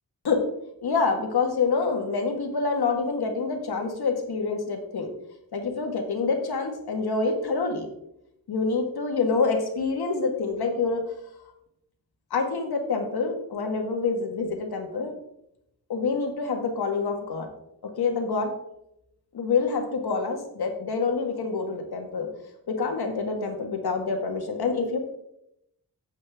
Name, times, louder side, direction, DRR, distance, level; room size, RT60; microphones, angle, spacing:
voice 1, 0.8-5.1 5.5-7.9 8.5-11.0 12.3-15.1 15.9-17.5 18.0-18.5 19.3-22.3 22.7-25.0, left 4 dB, 80° left, 3 dB, 1.8 m, -26 dB
9.7 x 7.6 x 3.6 m, 0.79 s
wide cardioid pair, 95°, 38 cm